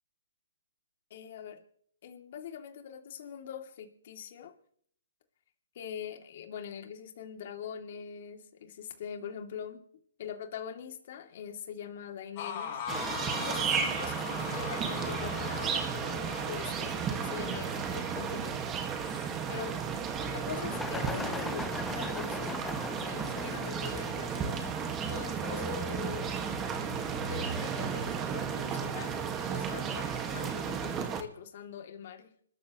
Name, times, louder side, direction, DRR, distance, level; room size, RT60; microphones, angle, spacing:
voice 1, 1.1-1.6 2.0-4.5 5.7-9.8 10.2-12.8 13.1-18.8 19.5-19.7 20.3-22.6 23.1-24.7 25.1-26.2 27.3-32.3, left 8 dB, 50° left, 4 dB, 2.8 m, -43 dB
sound 1, 12.4-23.8 24.3-24.4 24.8-26.8, left 7 dB, 35° left, 7.2 m, -42 dB
sound 2, 12.9-31.2, right 7 dB, 20° right, 1.9 m, -34 dB
sound 3, 20.7-27.9, left 3 dB, 5° left, 0.8 m, -42 dB
27.5 x 13.5 x 3.2 m, 0.63 s
hypercardioid pair, 145°, 0 cm